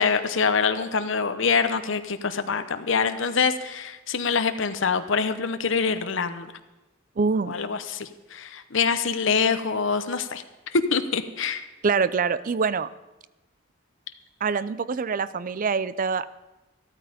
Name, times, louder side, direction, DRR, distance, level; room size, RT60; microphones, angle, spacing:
voice 1, 0.0-6.5 7.5-10.4 10.7-11.6, left 5 dB, 65° left, 10 dB, 0.8 m, -25 dB
voice 2, 7.2-7.6 11.8-12.9 14.4-16.3, right 5 dB, 45° right, 17 dB, 0.4 m, -25 dB
13.0 x 12.5 x 5.1 m, 1.1 s
head